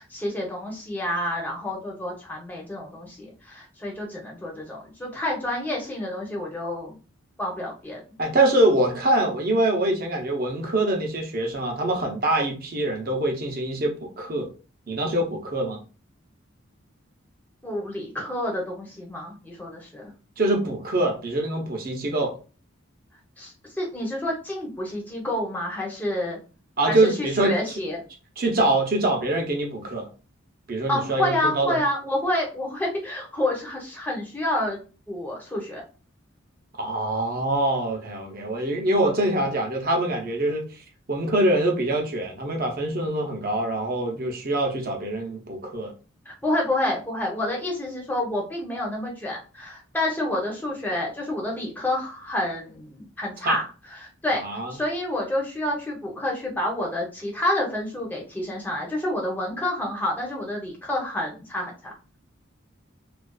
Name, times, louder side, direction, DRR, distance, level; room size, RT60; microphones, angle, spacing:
voice 1, 0.0-7.0 7.4-8.0 17.6-20.1 23.4-26.4 26.9-28.0 30.9-34.8 35.1-35.8 46.3-53.6 53.9-54.4 54.7-61.9, left 1 dB, 10° left, 0.6 m, -29 dB
voice 2, 8.2-14.5 14.9-15.8 20.4-22.4 26.8-27.6 28.4-30.1 30.7-31.8 36.8-40.8 41.1-45.9 53.4-53.6 54.3-54.7, right 1 dB, 45° right, 0.6 m, -24 dB
2.4 x 2.2 x 2.3 m
head